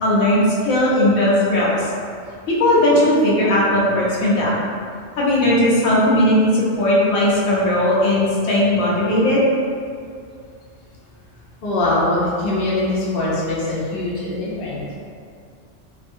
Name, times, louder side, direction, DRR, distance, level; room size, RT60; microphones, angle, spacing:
voice 1, 0.0-1.8 2.5-4.6 5.2-9.4, left 1 dB, 90° left, -6 dB, 1.0 m, -17 dB
voice 2, 11.6-14.8, left 2 dB, 55° left, -7 dB, 0.8 m, -22 dB
2.6 x 2.4 x 2.6 m, 2.3 s
omnidirectional pair, 1.3 m